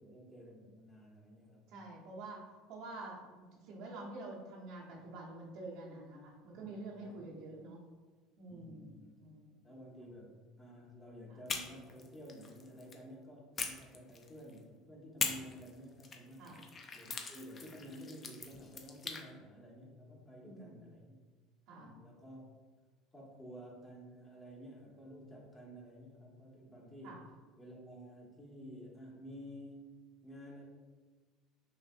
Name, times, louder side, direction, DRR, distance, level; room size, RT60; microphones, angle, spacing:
voice 1, 0.0-1.7 6.5-6.7 7.0-7.2 8.5-9.1 9.6-16.6 16.9-21.2 21.8-22.4 23.1-27.2 27.6-29.9 30.2-30.7, equal, 15° left, -4 dB, 1.4 m, -52 dB
voice 2, 1.7-2.4 2.7-7.8 8.4-9.6 11.3-11.4 16.4-16.6 20.5-20.9 21.7-22.0 27.0-27.2, right 2 dB, 70° right, -4 dB, 1.1 m, -48 dB
sound 1, 11.5-13.0 13.6-14.6 15.2-19.2, left 4 dB, 35° left, 0.6 m, -42 dB
5.9 x 2.6 x 2.6 m, 1.4 s
hypercardioid pair, 85°, 0 cm